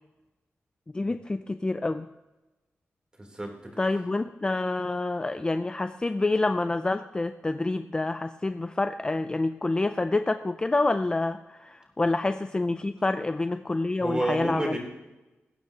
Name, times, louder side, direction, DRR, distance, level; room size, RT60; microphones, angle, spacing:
voice 1, 0.9-2.1 3.8-14.8, left 2 dB, 20° left, 9 dB, 0.4 m, -27 dB
voice 2, 3.2-3.5 14.0-14.8, right 1 dB, 20° right, 0 dB, 3.3 m, -29 dB
20.0 x 16.0 x 2.9 m, 1.1 s
wide cardioid pair, 135°, 5 cm